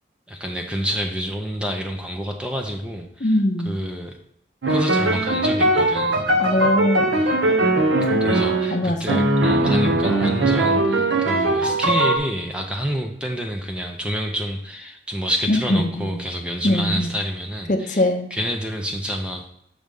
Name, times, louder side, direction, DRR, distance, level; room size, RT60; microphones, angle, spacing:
voice 1, 0.3-3.3 3.6-4.2 4.7-6.3 8.2-18.0 18.3-19.5, equal, 5° right, 3 dB, 0.5 m, -28 dB
voice 2, 3.2-3.7 6.4-7.1 8.7-9.2 15.5-16.1 16.6-17.1 17.7-18.3, left 1 dB, 45° left, 5 dB, 0.6 m, -21 dB
sound 1, 4.6-12.2, right 1 dB, 85° right, 0.8 m, -20 dB
6.4 x 3.4 x 5.2 m, 0.75 s
head